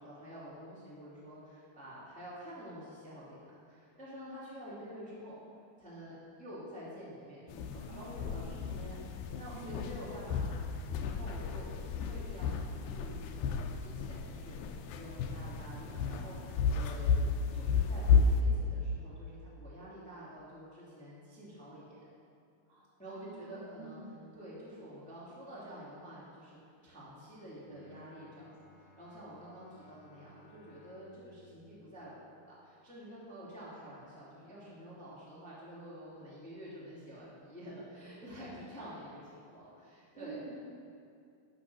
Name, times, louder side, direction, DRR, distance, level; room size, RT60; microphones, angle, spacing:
voice 1, 0.0-5.4 5.8-10.6 11.1-13.5 13.8-14.7 14.9-21.9 23.0-24.0 24.3-26.6 26.8-40.4, equal, 5° left, -9 dB, 1.7 m, -48 dB
sound 1, 7.5-18.4, left 5 dB, 80° left, 2.2 m, -32 dB
voice 2, 7.9-8.8 9.5-10.0 22.7-24.1 40.2-40.5, right 3 dB, 80° right, -5 dB, 4.0 m, -49 dB
Bowed string instrument, 27.6-32.8, right 1 dB, 35° left, 0.6 m, -62 dB
10.5 x 5.8 x 6.2 m, 2.4 s
omnidirectional pair, 4.4 m